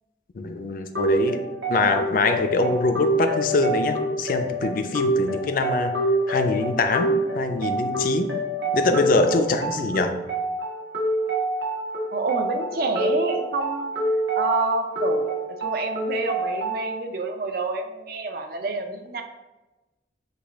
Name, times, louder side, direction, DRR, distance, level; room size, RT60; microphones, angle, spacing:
voice 1, 0.4-1.4 1.7-5.9 6.3-8.3 8.7-10.1, left 3 dB, 50° left, 7 dB, 0.4 m, -23 dB
sound 1, 1.0-16.9, right 1 dB, 75° right, 1.1 m, -27 dB
voice 2, 12.1-13.9 14.4-19.2, right 3 dB, 55° right, 5 dB, 0.5 m, -28 dB
6.6 x 2.3 x 3.4 m, 1.1 s
head